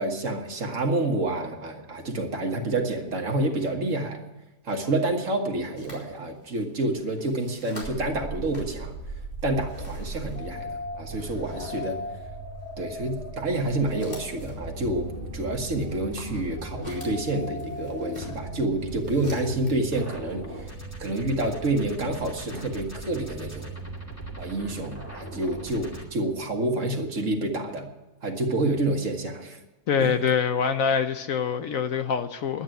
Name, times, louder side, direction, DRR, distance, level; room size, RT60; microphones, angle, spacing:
voice 1, 0.0-4.3 4.6-8.9 9.4-12.0 12.8-20.7 21.0-23.8 24.4-27.9 28.2-29.6 30.0-30.2, right 2 dB, 50° right, 1.9 m, -28 dB
sound 1, 5.8-8.1 8.4-10.7 11.1-12.0 12.6-12.8 13.4-20.0 20.2-21.4 21.9-23.0, equal, 25° left, 4.9 m, -46 dB
sound 2, 7.8-26.0, equal, 10° left, 2.4 m, -37 dB
voice 2, 29.9-32.6, left 6 dB, 65° left, 1.1 m, -25 dB
11.0 x 9.1 x 9.1 m
omnidirectional pair, 1.7 m